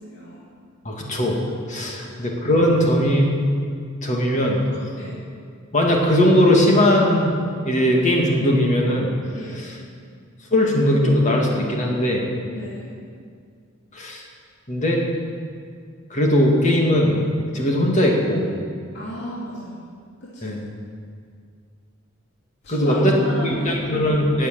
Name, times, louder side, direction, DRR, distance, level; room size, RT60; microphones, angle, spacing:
voice 1, 0.0-0.5 2.0-2.2 5.0-5.2 9.3-9.7 12.5-13.0 18.9-19.8 20.2-20.5 22.6-23.8, equal, 55° left, -8 dB, 2.9 m, -34 dB
voice 2, 0.8-1.4 1.7-3.3 4.0-4.6 5.7-7.3 7.6-9.1 9.6-9.7 10.5-12.2 13.9-14.2 14.7-15.0 16.1-17.2 17.5-18.5 20.4-20.6 22.7-23.1 23.4-24.5, equal, 35° left, 0 dB, 2.4 m, -19 dB
19.0 x 7.8 x 7.7 m, 2.2 s
head